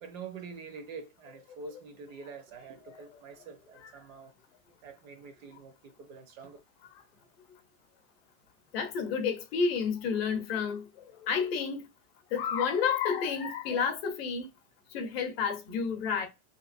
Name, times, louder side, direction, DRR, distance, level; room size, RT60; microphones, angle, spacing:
voice 1, 0.0-4.3 4.8-6.6, right 5 dB, 60° right, 1.0 m, -46 dB
voice 2, 8.7-10.8 11.2-11.8 12.3-14.5 14.9-16.3, left 6 dB, 45° left, 0.6 m, -30 dB
3.2 x 2.9 x 2.5 m
supercardioid pair, 180°, 44 cm